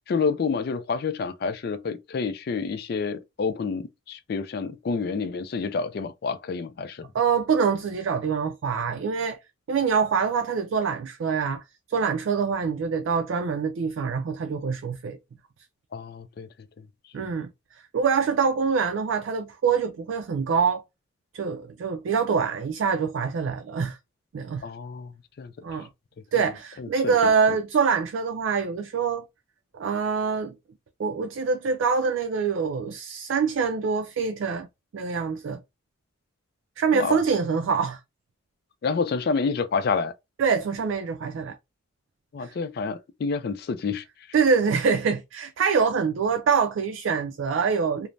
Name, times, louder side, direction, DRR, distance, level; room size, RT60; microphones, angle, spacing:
voice 1, 0.0-7.1 15.9-16.5 17.2-17.3 24.6-25.5 26.8-27.3 36.9-37.2 38.8-40.1 42.3-44.0, left 5 dB, 50° left, 0.3 m, -29 dB
voice 2, 7.1-9.4 9.7-11.6 11.9-15.2 17.1-17.5 17.9-20.8 21.3-24.0 24.3-24.7 25.6-25.9 26.3-29.3 29.7-30.5 31.0-34.7 34.9-35.6 36.8-38.0 40.4-41.6 42.4-42.5 44.3-48.1, right 5 dB, 75° right, 0.3 m, -25 dB
3.2 x 2.0 x 2.5 m
head